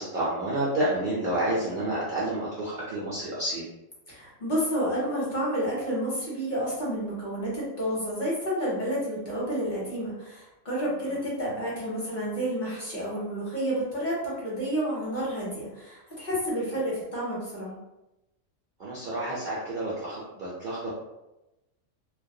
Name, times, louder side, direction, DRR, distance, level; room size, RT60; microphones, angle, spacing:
voice 1, 0.0-3.6 18.8-20.9, right 1 dB, 60° right, -7 dB, 0.5 m, -29 dB
voice 2, 4.1-17.8, equal, 45° left, -7 dB, 0.8 m, -30 dB
2.3 x 2.1 x 2.6 m, 0.97 s
omnidirectional pair, 1.3 m